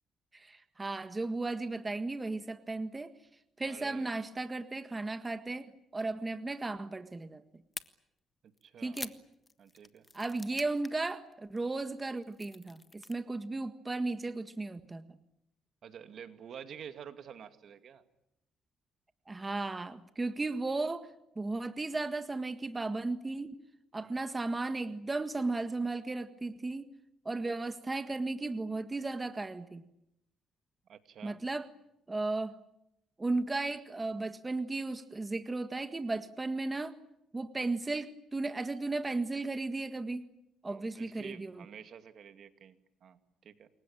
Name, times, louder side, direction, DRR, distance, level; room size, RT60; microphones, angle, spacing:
voice 1, 0.3-3.1 3.6-7.4 8.8-9.1 10.1-15.2 19.3-21.1 21.3-23.6 23.9-26.9 27.2-29.8 31.2-31.7 32.1-32.6 33.2-36.9 37.3-40.2 40.6-41.6, right 3 dB, 20° right, 9 dB, 1.6 m, -35 dB
voice 2, 3.6-4.2 8.6-9.1 9.6-10.1 15.8-18.0 24.0-24.1 30.9-31.4 40.7-43.7, right 8 dB, 65° right, 9 dB, 2.3 m, -49 dB
sound 1, 7.7-7.9 8.6-11.1 11.3-11.6 12.0-13.2, left 3 dB, 25° left, 1.5 m, -45 dB
28.5 x 23.0 x 8.9 m, 0.85 s
cardioid pair, 90°, 0 cm